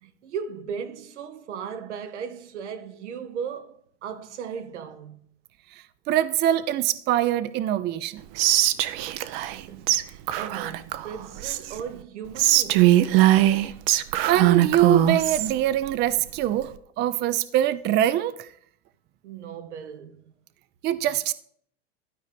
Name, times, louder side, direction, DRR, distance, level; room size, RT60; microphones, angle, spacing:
voice 1, 0.0-5.2 9.5-13.0 19.2-20.2, right 7 dB, 85° right, 1.1 m, -37 dB
voice 2, 6.1-8.2 14.3-18.5 20.8-21.3, right 12 dB, 30° right, 0.5 m, -23 dB
Whispering, 8.4-9.6 9.9-10.0 10.3-11.8 12.4-15.5, right 14 dB, 60° right, 0.7 m, -21 dB
12.5 x 4.6 x 5.1 m
hypercardioid pair, 110°, 34 cm